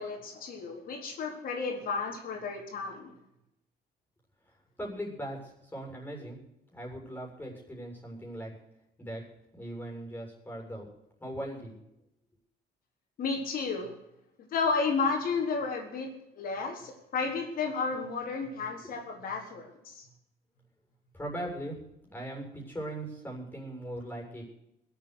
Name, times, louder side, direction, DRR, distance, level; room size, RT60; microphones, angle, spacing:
voice 1, 0.0-3.1 13.2-13.9 14.5-16.1 16.4-20.0, left 4 dB, 60° left, 2 dB, 4.1 m, -32 dB
voice 2, 4.8-6.4 6.7-8.5 9.0-9.2 9.6-10.9 11.2-11.8 21.1-21.8 22.1-24.4, right 1 dB, 10° left, 0 dB, 7.2 m, -39 dB
21.5 x 8.4 x 6.7 m, 0.82 s
cardioid pair, 110°, 17 cm